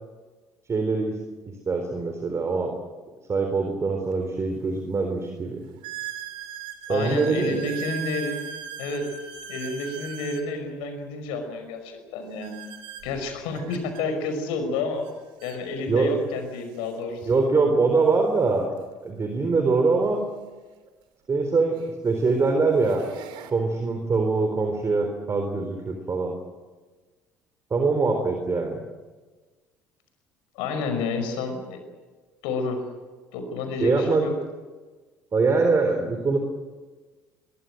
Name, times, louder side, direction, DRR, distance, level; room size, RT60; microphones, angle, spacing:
voice 1, 0.7-1.2 1.5-2.7 3.3-5.6 6.9-7.7 15.9-16.1 17.2-18.7 19.0-20.2 21.3-21.8 22.0-23.0 23.5-26.3 27.7-28.8 33.8-34.3 35.3-36.4, right 4 dB, 30° right, 5 dB, 3.9 m, -23 dB
sound 1, 4.1-4.2 4.9-5.0 5.8-10.5 12.4-14.0 15.0-15.1 15.4-15.6 16.4-16.5 18.7-18.8 20.9-21.0 21.7-22.0 22.6-23.5, right 9 dB, 60° right, 3.2 m, -38 dB
voice 2, 6.9-8.4 8.8-9.0 9.5-12.5 13.0-15.0 15.4-17.4 30.6-31.8 32.4-32.8 33.3-34.3, left 3 dB, 65° left, 7 dB, 5.6 m, -30 dB
23.5 x 23.0 x 7.9 m, 1.3 s
figure-of-eight pair, 60°, 9 cm